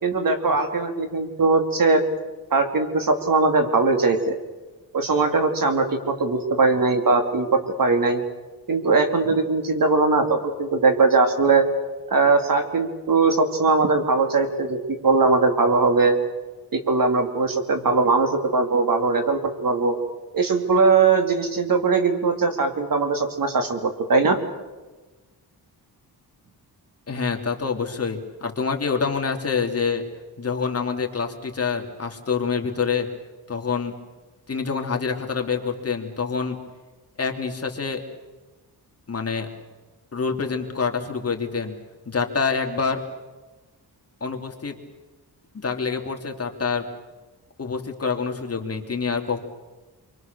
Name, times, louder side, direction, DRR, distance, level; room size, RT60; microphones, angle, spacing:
voice 1, 0.0-2.0 2.5-4.3 4.9-8.2 8.7-11.6 12.1-16.2 16.7-19.9 20.3-24.4, right 3 dB, 55° right, 5 dB, 3.3 m, -20 dB
voice 2, 27.1-30.0 30.4-33.1 33.5-34.0 34.5-36.6 37.2-38.0 39.1-39.5 40.1-41.8 42.1-43.0 44.2-44.8 45.5-46.9 47.6-49.4, left 5 dB, 35° left, 2 dB, 2.9 m, -26 dB
28.0 x 24.5 x 6.8 m, 1.2 s
wide cardioid pair, 140°, 40 cm